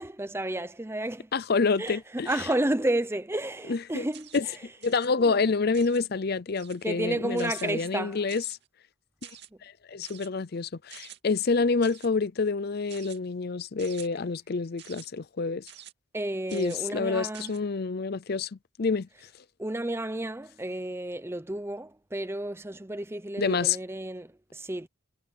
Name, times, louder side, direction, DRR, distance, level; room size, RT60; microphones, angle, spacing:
voice 1, 0.0-1.3 1.8-2.0 2.3-4.3 5.2-5.3 6.8-8.2 16.1-17.6 19.6-24.9, right 1 dB, 10° right, 0.7 m, -31 dB
voice 2, 1.3-2.3 3.7-4.0 4.3-4.4 4.8-8.4 9.6-15.7 16.5-18.5 18.8-19.1 23.4-23.8, left 4 dB, 50° left, 0.5 m, -27 dB
sound 1, 4.1-4.5 4.8-5.1 5.7-6.1 6.5-6.9 7.4-7.7 8.3-8.7 9.2-9.5 10.0-10.3 10.9-11.2 11.8-12.1 12.9-13.2 13.8-14.1 14.8-15.1 15.7-15.9 16.5-16.8 17.3-17.6, right 11 dB, 55° right, 2.5 m, -48 dB
head